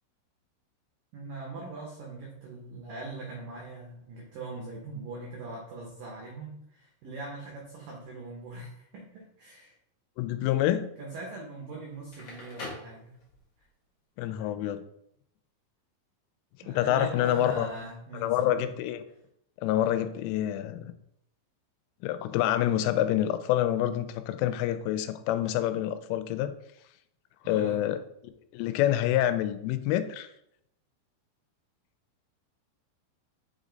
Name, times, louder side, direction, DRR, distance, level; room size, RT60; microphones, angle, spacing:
voice 1, 1.1-9.7 11.0-13.2 16.6-18.7 27.4-27.9, right 2 dB, 90° right, -1 dB, 1.9 m, -41 dB
voice 2, 10.2-10.9 14.2-14.8 16.7-17.7 18.1-19.0 19.6-20.9 22.0-26.5 27.5-28.0 28.5-30.3, left 12 dB, 85° left, 10 dB, 3.1 m, -27 dB
Crackle, 11.9-13.6, left 2 dB, 50° left, 1.8 m, -43 dB
6.9 x 5.1 x 3.9 m, 0.76 s
omnidirectional pair, 5.6 m